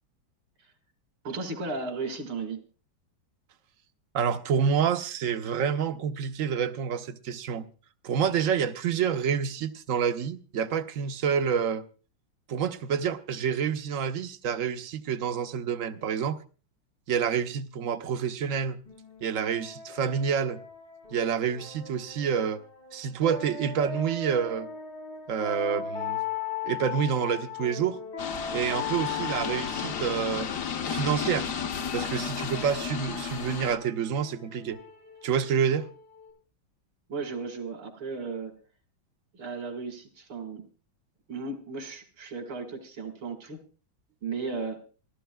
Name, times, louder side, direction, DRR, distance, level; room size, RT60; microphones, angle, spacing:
voice 1, 1.2-2.6 37.1-38.5 39.3-40.6 41.3-43.6 44.2-44.8, right 4 dB, 80° right, 2.6 m, -35 dB
voice 2, 4.1-7.7 8.0-11.8 12.5-16.4 17.1-18.8 19.2-20.6 21.1-22.6 22.9-24.7 25.3-26.2 26.6-28.0 28.5-30.5 30.9-31.5 31.9-34.8 35.2-35.9, right 7 dB, 65° right, 0.8 m, -28 dB
sound 1, 18.9-36.3, left 7 dB, 90° left, 8.1 m, -39 dB
sound 2, 28.2-33.8, left 7 dB, 55° left, 0.9 m, -33 dB
26.0 x 13.0 x 2.3 m
omnidirectional pair, 2.2 m